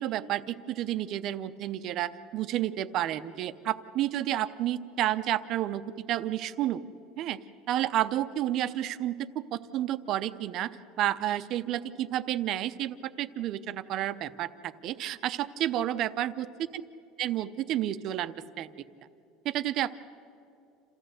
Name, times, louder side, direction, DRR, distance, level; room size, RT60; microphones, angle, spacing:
voice 1, 0.0-5.8 6.1-6.8 7.2-7.4 7.7-10.7 11.0-16.5 17.2-18.7 19.4-19.9, right 12 dB, 40° right, 12 dB, 0.6 m, -30 dB
28.0 x 15.0 x 7.9 m, 2.7 s
cardioid pair, 175°, 0 cm